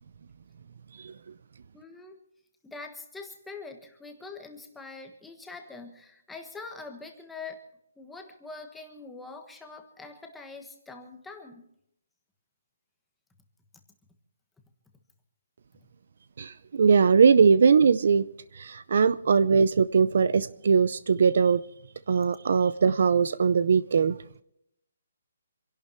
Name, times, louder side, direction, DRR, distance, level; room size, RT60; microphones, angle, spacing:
voice 1, 1.7-2.2 2.6-7.6 8.0-11.6, left 3 dB, 5° left, 3 dB, 1.3 m, -44 dB
voice 2, 16.4-18.3 18.6-21.6 22.1-24.2, right 5 dB, 50° right, 16 dB, 0.6 m, -21 dB
26.5 x 11.5 x 4.4 m, 0.75 s
hypercardioid pair, 180°, 0 cm